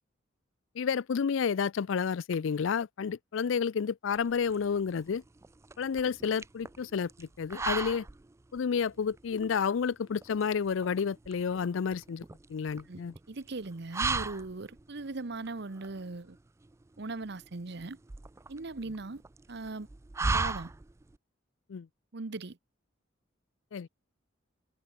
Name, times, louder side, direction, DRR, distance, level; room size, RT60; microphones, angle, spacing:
voice 1, 0.8-5.2 5.8-8.1 8.5-12.2 12.5-13.1 21.7-21.9 23.7-23.9, left 6 dB, 80° left, 0.4 m, -30 dB
sound 1, 4.1-21.2, right 3 dB, 15° right, 0.3 m, -38 dB
voice 2, 13.3-16.4 17.0-18.0 18.5-19.2 19.5-19.9 20.3-20.7 22.1-22.6, right 3 dB, 60° right, 1.0 m, -39 dB
head